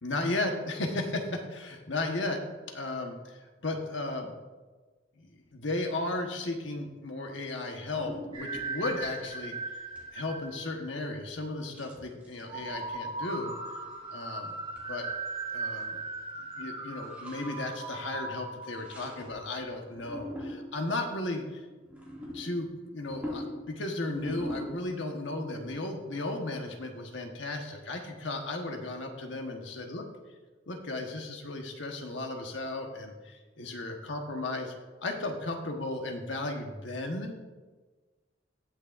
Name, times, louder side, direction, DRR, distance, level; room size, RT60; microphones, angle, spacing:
voice 1, 0.0-4.4 5.2-9.6 10.1-13.7 14.1-14.5 14.9-15.1 15.5-16.0 16.4-21.6 22.3-30.0 30.7-34.7 35.0-37.4, left 2 dB, 75° left, 3 dB, 1.3 m, -35 dB
sound 1, 7.3-7.5 7.9-9.2 9.7-10.1 10.4-10.5 11.7-12.8 13.3-13.6 13.9-14.2 14.8-14.9 15.2-15.3 15.5-16.2 17.0-17.6 18.6-19.5 19.8-20.9 21.8-25.1 25.6-25.7, left 1 dB, 10° right, 2.4 m, -43 dB
sound 2, 8.3-11.1 12.5-19.5, right 3 dB, 30° right, 2.1 m, -38 dB
19.0 x 6.4 x 2.6 m, 1.3 s
head